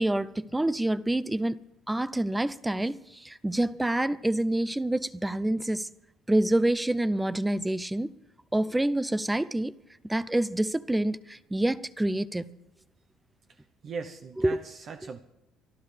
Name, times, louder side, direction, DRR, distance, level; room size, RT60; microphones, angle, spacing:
voice 1, 0.0-1.6 1.9-5.9 6.3-8.1 8.5-9.7 10.0-12.5 14.4-14.6, right 1 dB, 10° right, 0.6 m, -27 dB
voice 2, 13.5-15.2, right 5 dB, 50° right, 0.9 m, -40 dB
24.0 x 12.5 x 3.4 m
cardioid pair, 95°, 0 cm